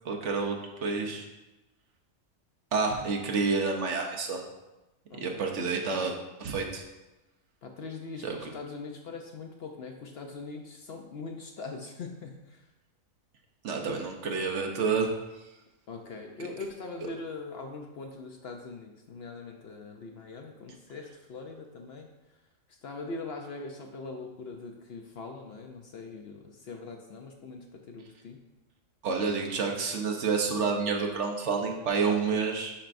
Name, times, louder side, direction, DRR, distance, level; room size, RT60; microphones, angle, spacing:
voice 1, 0.0-1.3 2.7-4.4 5.2-6.8 8.2-8.3 13.6-15.1 16.4-16.5 29.0-32.7, right 4 dB, 65° right, 1 dB, 1.0 m, -29 dB
voice 2, 5.1-5.5 7.6-12.7 13.8-14.0 15.9-22.4 22.7-28.4, left 3 dB, 60° left, 3 dB, 0.8 m, -42 dB
9.9 x 4.4 x 2.6 m, 1.0 s
omnidirectional pair, 1.4 m